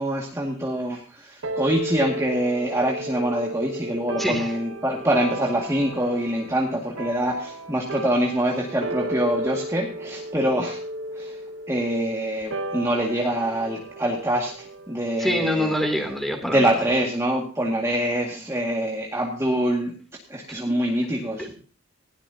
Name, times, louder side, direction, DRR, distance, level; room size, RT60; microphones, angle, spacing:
voice 1, 0.0-10.8 11.1-11.4 11.7-15.7 16.4-19.9 20.3-21.5, right 1 dB, 15° right, -2 dB, 2.1 m, -25 dB
sound 1, 1.4-16.2, right 1 dB, 80° right, 1.2 m, -34 dB
voice 2, 4.2-4.5 15.2-16.7 20.7-20.8 21.4-21.5, left 1 dB, ahead, 3 dB, 3.0 m, -25 dB
19.5 x 17.0 x 2.9 m, 0.39 s
head